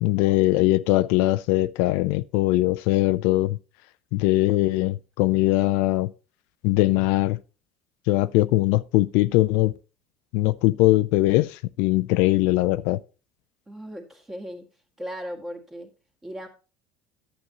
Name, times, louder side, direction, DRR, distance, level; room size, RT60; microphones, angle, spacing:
voice 1, 0.0-3.6 4.1-6.1 6.6-7.4 8.1-9.7 10.3-13.0, left 18 dB, 75° left, 0.4 m, -21 dB
voice 2, 13.7-14.7 15.0-15.9 16.2-16.5, equal, 15° right, 2.0 m, -37 dB
11.5 x 8.2 x 2.9 m
supercardioid pair, 125°, 3 cm